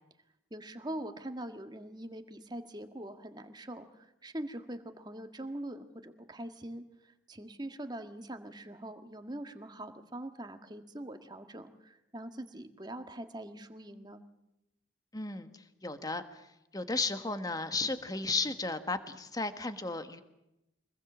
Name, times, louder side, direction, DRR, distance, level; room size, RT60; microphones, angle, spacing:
voice 1, 0.5-14.2, right 1 dB, 20° right, 7 dB, 1.7 m, -43 dB
voice 2, 15.1-15.5 15.8-16.4 16.7-20.2, left 3 dB, 20° left, 9 dB, 1.5 m, -34 dB
25.5 x 20.5 x 7.4 m, 0.89 s
head